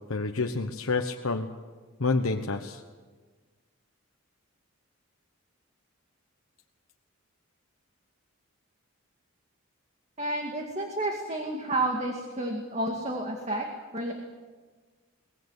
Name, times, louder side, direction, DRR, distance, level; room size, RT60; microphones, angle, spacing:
voice 1, 0.1-1.5 2.0-2.8, left 3 dB, 75° left, 3 dB, 1.1 m, -28 dB
voice 2, 10.2-13.7 13.9-14.1, right 1 dB, 30° right, 2 dB, 2.2 m, -30 dB
23.0 x 20.0 x 8.2 m, 1.4 s
head